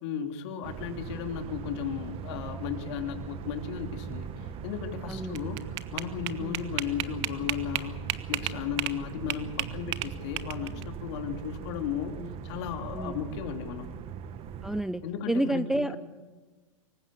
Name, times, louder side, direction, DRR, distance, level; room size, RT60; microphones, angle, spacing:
voice 1, 0.0-8.0 8.3-12.1 12.4-14.0 15.0-16.0, left 8 dB, 55° left, 5 dB, 3.1 m, -35 dB
sound 1, 0.6-14.8, right 7 dB, 35° right, 1.5 m, -40 dB
voice 2, 5.1-5.5 6.4-6.6 12.2-12.3 12.9-13.2 14.6-15.0 15.3-15.9, right 1 dB, ahead, 11 dB, 0.6 m, -30 dB
sound 2, 5.1-9.0 9.3-10.8, right 16 dB, 55° right, 1.4 m, -32 dB
25.0 x 15.5 x 8.4 m, 1.3 s
hypercardioid pair, 120°, 17 cm